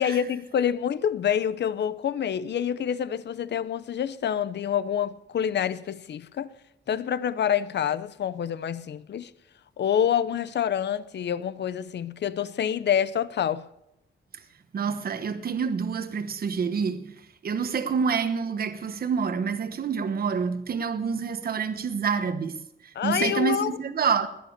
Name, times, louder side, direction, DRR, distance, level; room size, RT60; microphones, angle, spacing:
voice 1, 0.0-6.5 6.9-9.3 9.8-13.6 22.9-23.8, left 9 dB, 60° left, 0.7 m, -27 dB
voice 2, 14.7-17.1 17.4-22.5 22.8-24.3, right 6 dB, 50° right, 1.2 m, -27 dB
20.5 x 9.4 x 6.7 m
wide cardioid pair, 170°, 20 cm